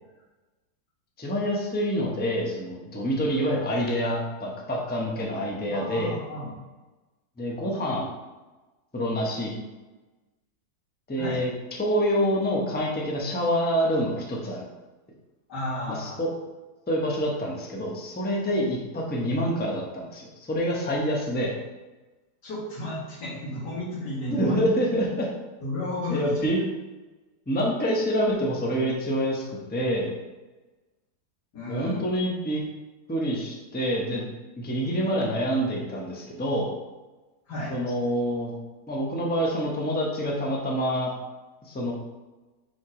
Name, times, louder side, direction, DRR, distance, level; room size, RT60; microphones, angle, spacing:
voice 1, 1.2-6.1 7.4-8.1 8.9-9.5 11.1-11.5 11.8-14.7 15.9-16.3 16.9-21.5 24.3-25.3 26.1-26.6 27.5-30.1 31.7-32.6 33.1-34.3 34.6-36.7 37.7-38.5 38.9-41.1 41.6-41.9, equal, 10° left, -2 dB, 0.7 m, -26 dB
voice 2, 5.7-6.6 11.2-11.4 15.5-16.1 22.4-24.6 25.6-26.4 31.5-32.0 37.5-37.7, left 1 dB, 85° left, -5 dB, 2.4 m, -33 dB
4.6 x 4.4 x 4.9 m, 1.2 s
omnidirectional pair, 1.7 m